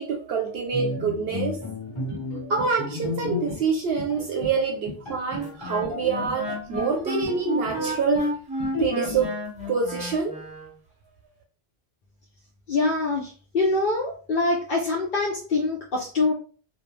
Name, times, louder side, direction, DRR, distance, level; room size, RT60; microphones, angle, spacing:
voice 1, 0.0-1.7 2.4-8.3 8.8-9.3 9.7-10.4, right 5 dB, 70° right, 1 dB, 0.8 m, -26 dB
Bowed string instrument, 0.7-3.8 4.1-4.3 4.7-4.8 5.0-7.0 7.3-8.1 8.7-9.3, left 3 dB, 25° left, 1.2 m, -33 dB
sound 1, 2.1-2.7 3.0-3.6 4.0-4.6 4.9-5.5 5.8-6.4 6.7-7.4 7.7-8.3 8.6-9.3, equal, 40° right, 0.8 m, -38 dB
Wind instrument woodwind instrument, 5.3-10.7, equal, 10° right, 0.5 m, -32 dB
voice 2, 12.7-16.3, left 3 dB, 60° left, -3 dB, 0.7 m, -24 dB
2.4 x 2.1 x 3.1 m, 0.39 s
omnidirectional pair, 1.1 m